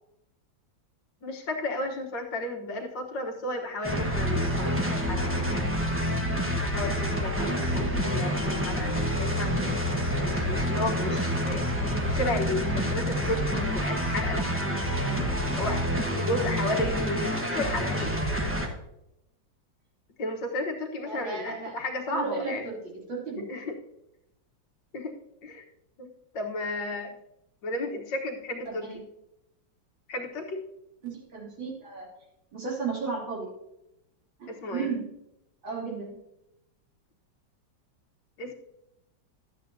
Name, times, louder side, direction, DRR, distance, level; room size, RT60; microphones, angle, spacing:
voice 1, 1.2-5.5 6.7-9.8 10.3-11.7 12.0-14.4 15.6-15.8 16.1-18.1 20.2-22.6 23.5-23.8 24.9-25.1 25.4-25.6 26.0-27.2 27.6-29.0 30.1-30.6 34.5-34.9 38.4-38.5, left 2 dB, 70° left, 1 dB, 2.0 m, -33 dB
sound 1, 3.8-18.7, equal, 10° right, 0.8 m, -28 dB
voice 2, 21.0-21.8 22.1-23.4 28.6-29.0 31.0-32.1 32.5-33.5 34.4-35.1 35.6-36.1, right 5 dB, 90° right, -4 dB, 3.8 m, -34 dB
13.0 x 9.2 x 2.7 m, 0.84 s
omnidirectional pair, 2.1 m